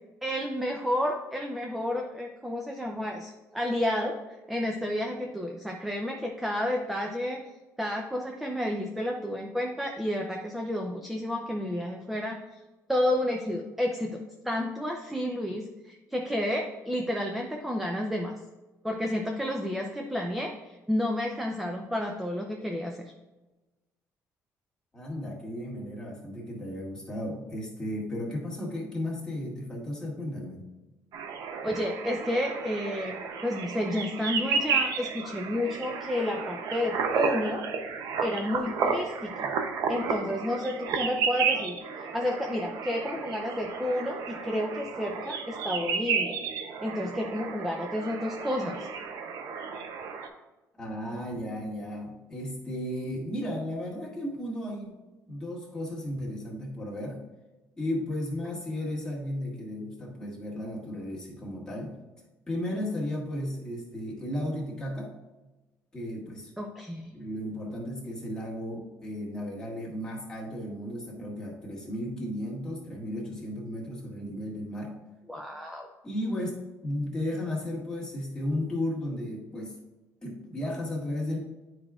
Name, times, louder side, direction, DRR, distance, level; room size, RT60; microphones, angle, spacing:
voice 1, 0.2-4.2 4.5-7.4 7.8-12.4 12.9-18.4 18.8-23.0 31.6-37.6 38.2-39.5 39.9-41.8 42.1-46.4 46.8-48.9 66.6-67.1 75.3-75.9, left 1 dB, 5° right, 1 dB, 0.6 m, -31 dB
voice 2, 24.9-30.7 50.8-55.0 55.3-57.2 57.8-62.0 62.5-65.1 65.9-66.5 67.1-75.0 76.0-79.8 80.2-81.4, left 1 dB, 10° left, -5 dB, 1.8 m, -34 dB
sound 1, 31.1-50.3, right 5 dB, 70° right, 0.7 m, -32 dB
9.5 x 4.9 x 2.4 m, 1.1 s
cardioid pair, 120°, 6 cm